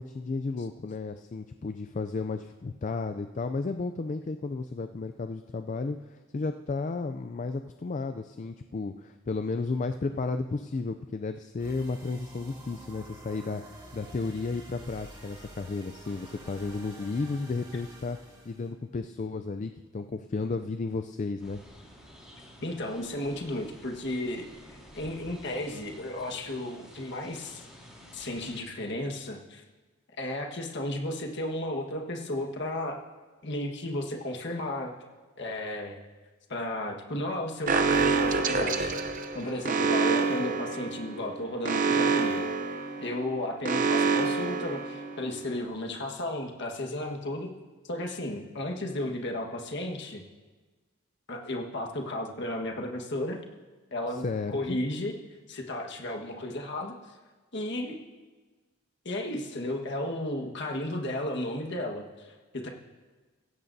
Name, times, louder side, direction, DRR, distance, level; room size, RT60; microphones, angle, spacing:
voice 1, 0.0-21.6 54.1-54.8, left 3 dB, 35° left, 8 dB, 0.3 m, -33 dB
sound 1, 11.6-18.7, right 1 dB, 20° right, 2.4 m, -48 dB
sound 2, 21.4-28.6, equal, 5° right, 3.3 m, -51 dB
voice 2, 22.6-24.5 24.9-27.6 28.1-29.6 30.2-33.0 33.4-34.9 35.4-36.0 36.5-42.4 43.0-47.5 47.8-50.2 51.3-53.4 53.9-55.1 55.5-57.2 57.5-58.0 59.0-62.7, left 1 dB, 55° left, 1 dB, 1.5 m, -34 dB
Alarm, 37.7-45.4, right 4 dB, 40° right, 0.7 m, -27 dB
17.0 x 16.0 x 2.7 m, 1.3 s
head